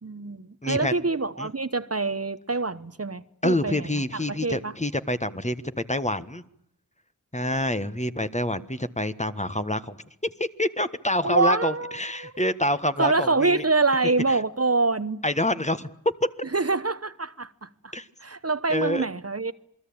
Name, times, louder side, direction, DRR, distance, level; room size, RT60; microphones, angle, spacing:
voice 1, 0.0-4.7 11.2-12.3 13.0-15.2 16.5-17.9 18.2-19.5, right 3 dB, 40° right, 1.1 m, -26 dB
voice 2, 0.6-1.1 1.4-1.5 3.4-5.6 5.9-6.4 7.3-10.0 10.6-13.6 14.3-14.4 15.2-15.9 17.9-18.1 18.7-19.1, left 1 dB, 20° left, 1.4 m, -27 dB
28.0 x 21.0 x 8.8 m
wide cardioid pair, 45°, 37 cm